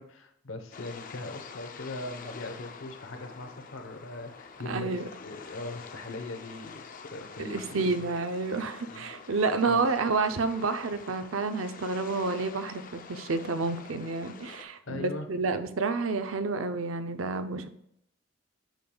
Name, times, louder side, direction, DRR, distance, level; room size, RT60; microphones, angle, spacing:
voice 1, 0.0-8.1 8.9-9.0 9.7-9.8 14.9-15.3, left 2 dB, 85° left, 6 dB, 1.0 m, -40 dB
sound 1, 0.7-14.6, left 5 dB, 45° left, 0.5 m, -47 dB
voice 2, 4.6-5.1 7.5-17.7, right 4 dB, 85° right, 9 dB, 0.6 m, -29 dB
9.0 x 6.9 x 2.3 m, 0.75 s
head